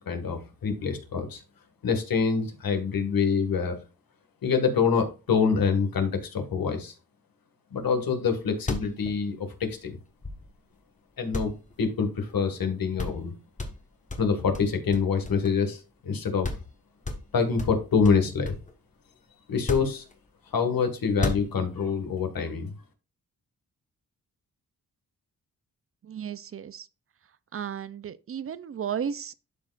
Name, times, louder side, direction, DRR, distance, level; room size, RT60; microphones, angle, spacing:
voice 1, 0.1-1.4 1.8-3.8 4.4-6.9 7.7-10.0 11.2-13.3 14.2-16.5 17.3-18.6 19.5-20.0 20.5-22.7, left 5 dB, 75° left, 1.7 m, -26 dB
sound 1, 8.5-10.7 11.3-12.4 12.6-12.7 13.0-13.3 13.6-15.7 16.1-16.2 16.4-16.7 17.0-18.7 19.5-20.5 21.1-21.9, left 2 dB, 20° left, 1.1 m, -34 dB
voice 2, 26.0-26.9 27.5-29.3, right 8 dB, 40° right, 0.4 m, -34 dB
11.5 x 4.7 x 2.4 m
wide cardioid pair, 120°, 35 cm